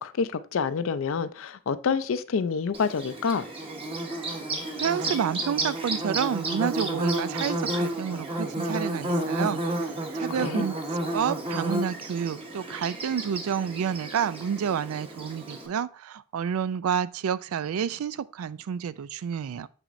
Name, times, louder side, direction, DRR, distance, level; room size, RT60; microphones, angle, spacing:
voice 1, 0.0-3.5 10.3-10.7, left 5 dB, 65° left, 0.4 m, -28 dB
Bird / Buzz, 2.7-15.7, right 1 dB, 25° right, 1.0 m, -31 dB
voice 2, 4.8-10.8 11.1-19.7, right 7 dB, 80° right, 0.3 m, -29 dB
6.7 x 6.0 x 2.6 m
head